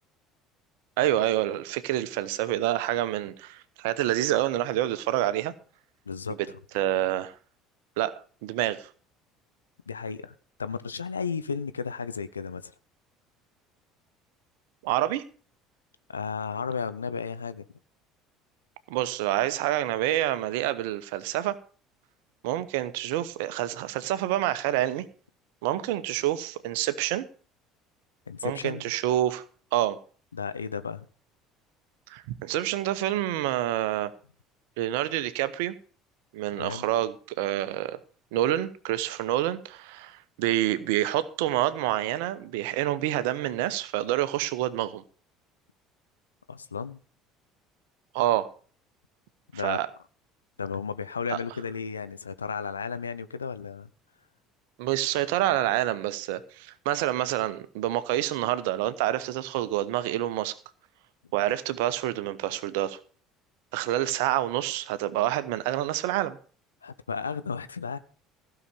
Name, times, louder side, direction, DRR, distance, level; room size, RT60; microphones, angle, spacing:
voice 1, 1.0-5.5 6.7-7.3 8.0-8.9 14.8-15.2 18.9-21.6 22.4-25.1 25.6-27.2 28.4-29.4 29.7-30.0 32.1-34.1 34.8-35.8 36.3-38.0 38.3-45.0 48.1-48.5 49.6-49.9 54.8-60.5 61.3-63.0 63.7-66.4, right 13 dB, 65° right, 0.9 m, -27 dB
voice 2, 6.1-6.4 9.9-10.3 10.6-12.7 16.1-17.7 28.3-28.8 30.3-31.1 36.5-36.9 46.5-47.0 49.5-49.8 50.6-53.9 66.8-68.0, left 5 dB, 80° left, 0.5 m, -33 dB
15.5 x 6.0 x 6.9 m
figure-of-eight pair, 60°, 0 cm